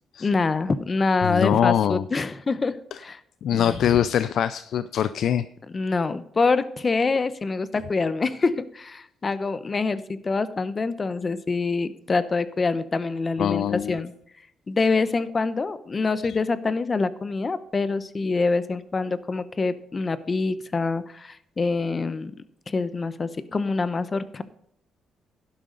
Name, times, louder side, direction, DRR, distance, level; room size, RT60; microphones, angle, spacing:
voice 1, 0.2-3.2 3.5-3.8 5.7-14.1 14.7-22.3 22.7-24.4, left 4 dB, 30° left, 14 dB, 0.9 m, -25 dB
voice 2, 1.2-2.0 3.4-5.4 13.4-14.0, left 9 dB, 70° left, 14 dB, 0.4 m, -23 dB
12.0 x 11.5 x 4.0 m, 0.72 s
cardioid pair, 90°, 0 cm